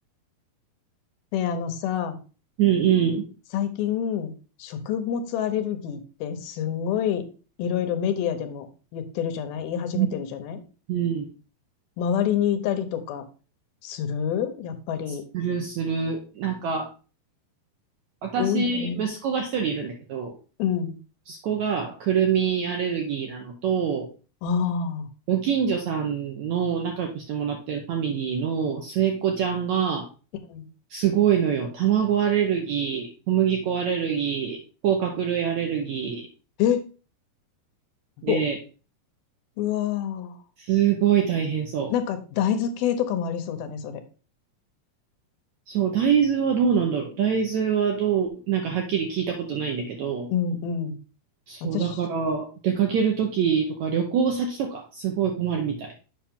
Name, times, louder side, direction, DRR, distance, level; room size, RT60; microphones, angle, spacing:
voice 1, 1.3-2.2 3.5-4.3 4.6-7.2 7.6-8.7 8.9-10.6 12.0-13.2 13.8-15.2 18.4-19.1 20.6-21.0 24.4-25.1 30.5-30.7 36.6-36.9 38.3-38.4 39.6-40.4 41.9-44.0 50.3-51.0 51.6-52.0, left 8 dB, 80° left, 8 dB, 2.7 m, -27 dB
voice 2, 2.6-3.2 9.9-10.1 10.9-11.3 15.3-16.9 18.2-20.3 21.3-24.1 25.3-30.1 30.9-34.6 34.8-36.2 38.2-38.6 40.6-41.9 45.7-50.3 51.5-55.9, right 8 dB, 75° right, 2 dB, 1.7 m, -24 dB
7.5 x 5.7 x 3.6 m, 0.35 s
omnidirectional pair, 4.3 m